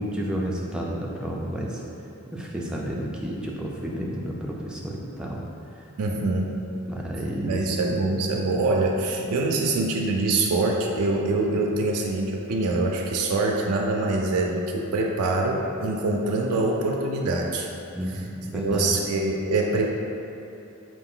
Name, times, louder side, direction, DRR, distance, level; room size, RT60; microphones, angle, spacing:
voice 1, 0.0-1.8 2.3-5.4 5.8-6.2 6.8-7.6 17.9-18.9, equal, 5° right, -3 dB, 0.3 m, -31 dB
voice 2, 6.0-6.6 7.4-17.7 18.5-19.9, right 2 dB, 80° right, 0 dB, 0.4 m, -24 dB
4.6 x 2.5 x 3.7 m, 2.8 s
head